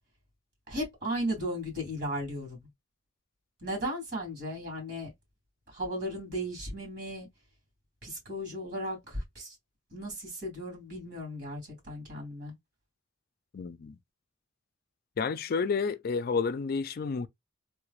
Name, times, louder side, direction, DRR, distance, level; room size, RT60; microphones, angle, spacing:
voice 1, 0.7-2.6 3.6-5.1 5.7-7.3 8.0-9.6 9.9-11.6 11.9-12.5, equal, 55° right, 2.3 m, -35 dB
voice 2, 13.5-14.0 15.2-17.3, left 5 dB, 45° left, 0.4 m, -30 dB
3.3 x 3.2 x 2.4 m
head